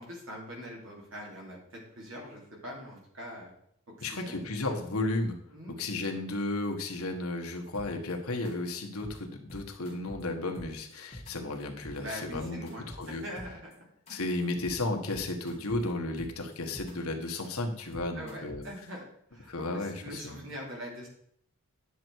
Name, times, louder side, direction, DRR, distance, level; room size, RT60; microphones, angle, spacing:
voice 1, 0.0-3.5 4.0-4.4 5.5-5.7 12.0-14.2 18.1-19.0 19.3-21.1, equal, 60° right, -1 dB, 3.0 m, -43 dB
voice 2, 4.0-5.4 5.8-13.2 14.1-18.6 19.5-20.4, left 2 dB, 75° left, 3 dB, 1.5 m, -34 dB
sound 1, 7.7-8.1 8.4-8.5 8.8-9.2 9.5-10.2 10.5-11.3 11.6-12.0 12.3-13.7 14.1-14.2 14.4-14.8 15.1-15.8 16.2-16.9 17.2-18.8, equal, 30° left, 2.5 m, -45 dB
10.0 x 6.7 x 4.7 m, 0.70 s
head